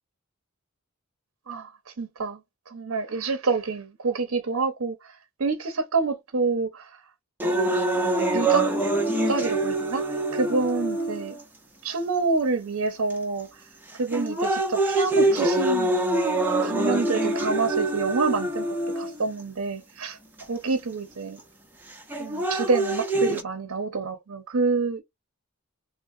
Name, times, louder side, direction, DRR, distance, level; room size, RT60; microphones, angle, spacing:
voice 1, 2.0-2.4 2.7-4.9 5.4-6.8 7.4-7.8 8.2-8.7 9.1-10.0 10.3-11.3 11.8-13.5 14.0-16.0 16.6-18.7 19.0-20.2 20.5-21.4 22.2-25.0, right 4 dB, 80° right, 0.7 m, -27 dB
sound 1, 7.4-11.4 12.2-12.3 13.1-13.4 13.9-19.4 20.4-20.5 21.9-23.4, right 2 dB, 10° right, 0.6 m, -25 dB
3.6 x 2.1 x 2.5 m
head